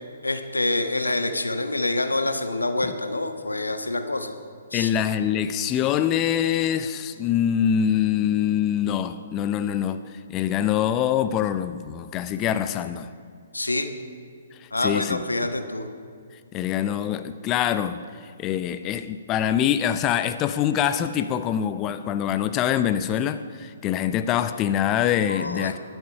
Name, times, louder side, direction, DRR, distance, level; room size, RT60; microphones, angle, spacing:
voice 1, 0.2-4.3 4.7-4.9 13.5-13.9 14.7-15.9 25.3-25.8, left 2 dB, 90° left, 1.2 m, -26 dB
voice 2, 4.7-13.1 14.5-15.2 16.5-25.8, left 10 dB, 25° left, 0.5 m, -24 dB
22.0 x 8.0 x 5.6 m
figure-of-eight pair, 130°, 0 cm